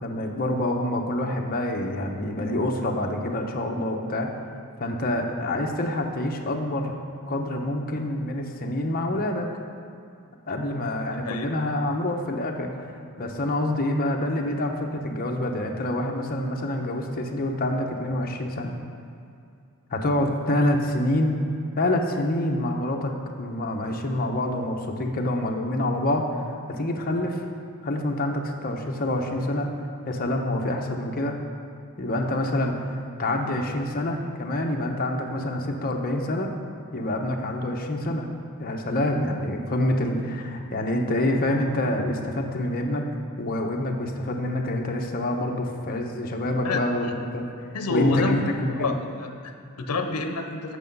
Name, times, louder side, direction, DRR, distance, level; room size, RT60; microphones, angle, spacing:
voice 1, 0.0-4.3 4.8-7.0 7.3-9.5 10.5-18.7 19.9-21.4 21.8-23.1 23.4-27.4 27.8-29.7 30.1-31.4 32.0-36.5 36.9-38.3 38.6-43.1 43.4-47.4 47.9-49.0, left 1 dB, 40° left, 2 dB, 0.8 m, -27 dB
voice 2, 47.7-48.4 48.8-50.8, left 3 dB, 90° left, 6 dB, 0.7 m, -28 dB
8.2 x 6.5 x 5.3 m, 2.4 s
head